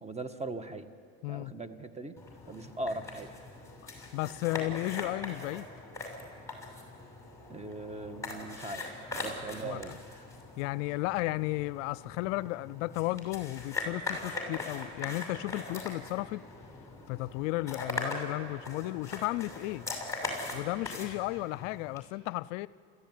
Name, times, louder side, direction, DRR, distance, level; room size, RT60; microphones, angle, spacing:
voice 1, 0.0-0.9 1.3-2.1 2.5-3.3 7.5-8.8 9.1-10.2, right 2 dB, 15° right, 10 dB, 1.6 m, -39 dB
voice 2, 1.2-1.5 4.1-5.7 9.6-10.0 10.6-16.4 17.1-19.9 20.5-22.7, left 19 dB, 75° left, 20 dB, 0.6 m, -34 dB
sound 1, 2.2-22.0, left 2 dB, 5° left, 6.3 m, -41 dB
30.0 x 14.5 x 9.5 m, 2.4 s
hypercardioid pair, 85°, 39 cm